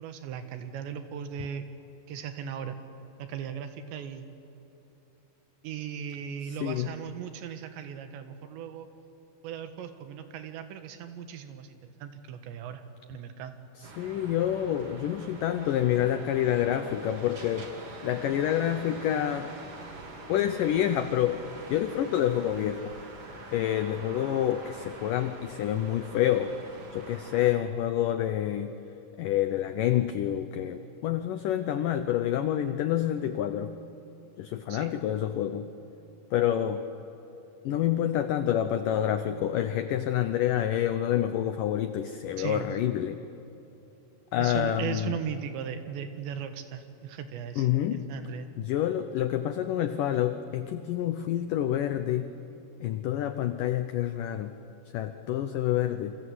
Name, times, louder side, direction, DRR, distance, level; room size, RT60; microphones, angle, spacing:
voice 1, 0.0-1.6 2.1-2.8 3.2-4.3 5.6-8.9 9.4-12.8 13.1-13.5 34.7-34.9 42.4-42.7 44.4-48.5, right 8 dB, 85° right, 8 dB, 3.8 m, -37 dB
voice 2, 6.5-7.0 13.8-17.7 18.0-19.5 20.3-21.4 21.7-22.9 23.5-26.6 26.9-28.8 29.2-33.7 34.4-35.7 36.3-36.8 37.6-43.2 44.3-45.2 47.6-48.1 48.6-52.3 52.8-54.5 54.9-56.2, left 11 dB, 85° left, 9 dB, 1.9 m, -28 dB
sound 1, 13.8-27.5, right 3 dB, 35° right, 3.1 m, -45 dB
28.0 x 26.0 x 8.0 m, 2.9 s
omnidirectional pair, 5.0 m